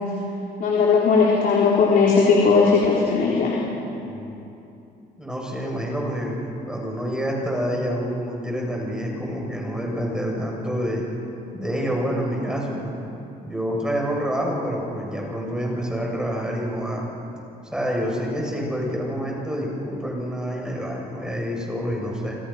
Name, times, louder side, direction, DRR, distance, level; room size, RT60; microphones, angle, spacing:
voice 1, 0.6-3.6, left 5 dB, 60° left, -3 dB, 4.1 m, -18 dB
voice 2, 5.2-6.3 6.6-11.0 11.5-12.9 13.4-17.0 17.7-22.4, equal, 5° right, -2 dB, 7.6 m, -27 dB
27.5 x 26.0 x 5.9 m, 2.7 s
cardioid pair, 110°, 17 cm